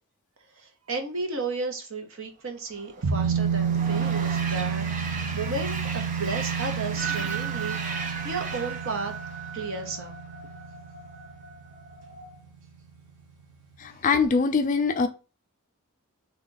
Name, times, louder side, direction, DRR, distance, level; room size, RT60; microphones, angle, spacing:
voice 1, 0.6-9.1 9.5-10.1, right 3 dB, 60° right, 0.8 m, -33 dB
Train, 2.7-10.2, right 4 dB, 35° right, 0.4 m, -37 dB
sound 1, 3.0-12.1 12.4-12.5, right 6 dB, 90° right, 1.2 m, -30 dB
sound 2, 7.0-12.4, right 7 dB, 15° right, 1.0 m, -39 dB
voice 2, 13.8-15.1, left 4 dB, 35° left, 0.3 m, -23 dB
3.5 x 2.4 x 3.8 m
head